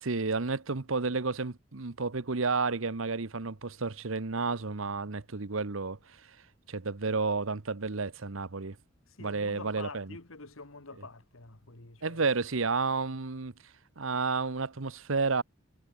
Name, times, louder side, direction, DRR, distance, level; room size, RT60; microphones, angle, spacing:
voice 1, 0.0-6.0 6.7-8.8 9.2-10.2 12.0-13.5 14.0-15.4, right 4 dB, 75° right, 1.1 m, -31 dB
voice 2, 9.1-12.2, left 3 dB, 85° left, 2.4 m, -47 dB
head